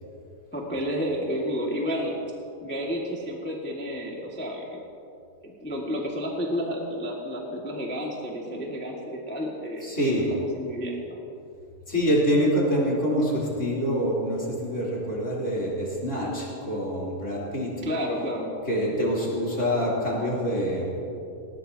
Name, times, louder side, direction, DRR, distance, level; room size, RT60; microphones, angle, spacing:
voice 1, 0.5-2.1 2.6-4.8 5.4-11.2 17.8-18.5, equal, 5° left, -2 dB, 0.9 m, -31 dB
voice 2, 9.8-10.3 11.9-17.8 18.7-21.0, equal, 20° left, -6 dB, 3.7 m, -26 dB
19.5 x 19.5 x 2.9 m, 2.6 s
omnidirectional pair, 3.7 m